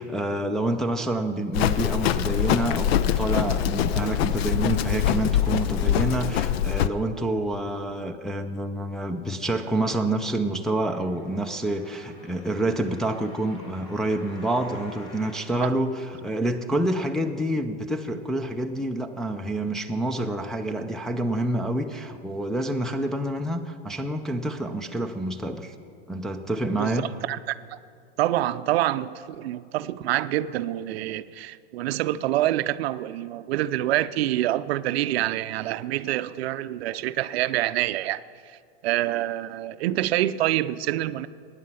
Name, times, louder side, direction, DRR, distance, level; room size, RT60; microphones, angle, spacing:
voice 1, 0.0-25.7 26.1-27.0, right 1 dB, ahead, 0.4 m, -28 dB
Livestock farm animals working animals, 1.5-6.9, left 10 dB, 65° left, 0.6 m, -23 dB
sound 1, 10.7-16.7 17.3-17.4, left 2 dB, 40° left, 3.1 m, -50 dB
voice 2, 27.2-27.8 28.2-38.2 38.8-41.3, right 14 dB, 65° right, 0.5 m, -26 dB
15.5 x 9.8 x 5.6 m
hypercardioid pair, 125°, 33 cm